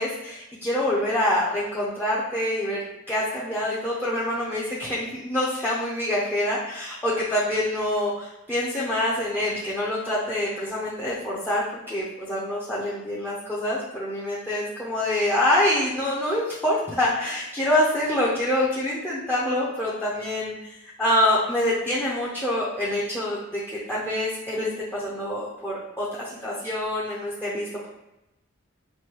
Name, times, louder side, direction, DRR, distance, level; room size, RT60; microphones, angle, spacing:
voice 1, 0.0-2.8 3.1-27.9, left 1 dB, 10° left, -6 dB, 0.6 m, -26 dB
4.6 x 2.7 x 3.0 m, 0.93 s
head